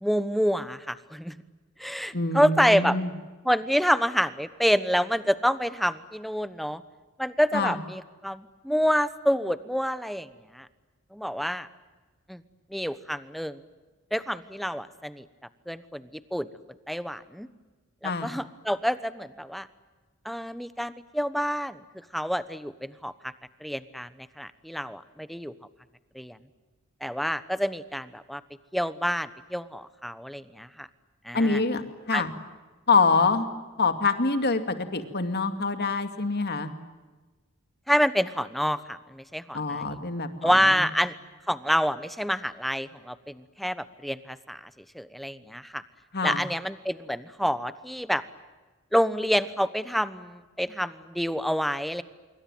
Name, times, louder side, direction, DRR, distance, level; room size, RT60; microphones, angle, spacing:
voice 1, 0.0-1.3 1.8-3.0 3.4-6.8 7.2-10.7 11.1-11.7 12.3-12.4 12.7-13.6 14.1-15.3 15.7-16.5 16.9-17.5 18.0-19.7 20.2-21.8 22.1-23.3 23.6-24.1 24.4-25.5 26.1-26.4 27.0-28.4 28.7-30.9 31.2-31.6 32.1-32.2 37.9-39.8 40.4-41.1 41.5-44.7 44.9-45.8 46.2-48.2 48.9-52.0, equal, ahead, 14 dB, 1.1 m, -27 dB
voice 2, 2.1-3.1 7.5-7.8 18.0-18.4 31.3-31.8 32.1-32.3 32.9-33.5 33.8-36.7 39.5-40.9 46.1-46.4, left 4 dB, 50° left, 8 dB, 2.4 m, -25 dB
26.5 x 24.0 x 9.2 m, 1.3 s
head